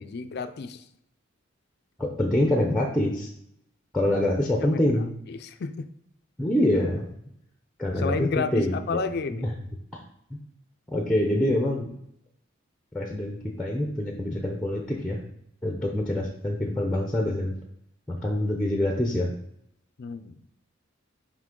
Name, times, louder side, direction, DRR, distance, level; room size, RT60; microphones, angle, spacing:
voice 1, 0.0-0.8 4.6-4.8 5.3-5.9 8.0-9.5 20.0-20.4, left 4 dB, 50° left, 11 dB, 0.4 m, -31 dB
voice 2, 2.0-3.3 3.9-5.1 6.4-7.1 7.8-9.0 9.3-9.5 9.9-10.0 10.9-11.9 12.9-15.2 15.6-17.6 18.1-19.3, left 1 dB, 5° left, 1 dB, 0.6 m, -25 dB
6.0 x 5.0 x 3.7 m, 0.74 s
head